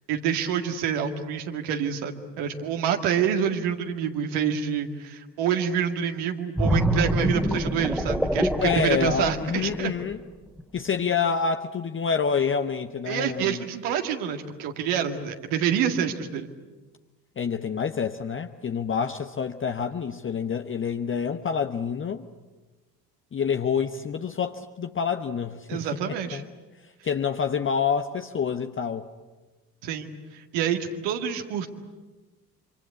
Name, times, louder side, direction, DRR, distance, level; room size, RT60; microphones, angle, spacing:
voice 1, 0.1-9.9 13.1-16.5 25.7-26.4 29.8-31.7, right 8 dB, 60° right, 5 dB, 2.1 m, -27 dB
sound 1, 6.6-10.1 10.6-10.8, equal, ahead, 2.2 m, -25 dB
voice 2, 8.6-10.2 10.7-13.6 17.4-22.3 23.3-26.4 27.0-29.1, left 6 dB, 25° left, 7 dB, 1.0 m, -27 dB
26.5 x 25.5 x 8.5 m, 1.2 s
figure-of-eight pair, 50°, 48 cm